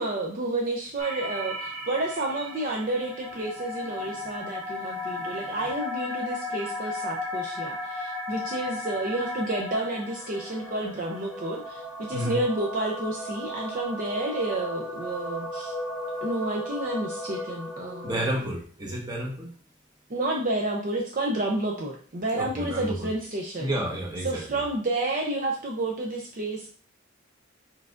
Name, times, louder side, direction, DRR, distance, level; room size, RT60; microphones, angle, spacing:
voice 1, 0.0-11.8 12.1-15.7 16.2-18.1 20.1-23.7 24.2-26.7, right 2 dB, 45° right, 0 dB, 0.6 m, -30 dB
sound 1, 1.0-18.3, left 1 dB, 5° right, 2.0 m, -35 dB
voice 2, 3.8-4.2 5.4-5.7 12.1-12.4 18.0-19.5 22.3-23.1 23.6-24.6, right 1 dB, 20° right, -1 dB, 1.2 m, -31 dB
4.7 x 4.5 x 2.5 m, 0.42 s
head